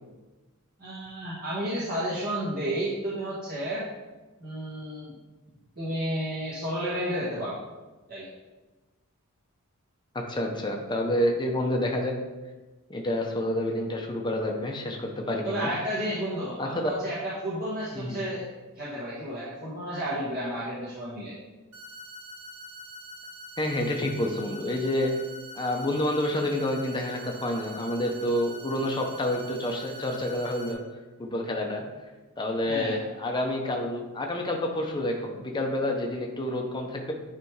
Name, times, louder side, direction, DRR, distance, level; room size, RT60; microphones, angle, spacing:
voice 1, 0.8-3.9 4.4-5.1 5.8-7.6 8.1-8.3 15.4-18.5 18.7-21.3 32.7-33.0, equal, 45° right, -9 dB, 1.6 m, -32 dB
voice 2, 10.1-12.1 12.9-15.7 16.6-17.0 17.9-18.2 23.6-25.1 25.5-30.8 31.2-31.8 32.4-37.1, left 1 dB, 20° left, 1 dB, 0.8 m, -28 dB
sound 1, 21.7-30.7, equal, 70° right, 1.4 m, -44 dB
9.8 x 3.4 x 4.7 m, 1.2 s
head